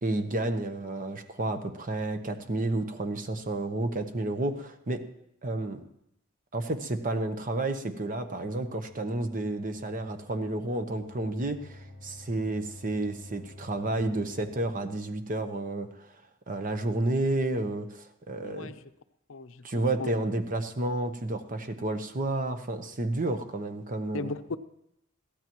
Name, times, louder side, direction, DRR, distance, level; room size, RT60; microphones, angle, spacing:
voice 1, 0.0-5.0 5.4-5.8 6.5-16.1 16.5-18.7 19.6-24.4, right 2 dB, 40° right, 8 dB, 1.0 m, -31 dB
sound 1, 8.3-15.1, left 1 dB, 30° left, 5.0 m, -50 dB
voice 2, 18.4-18.8 19.3-20.1 24.1-24.6, left 3 dB, 70° left, 10 dB, 0.6 m, -36 dB
22.5 x 15.5 x 3.1 m, 0.76 s
head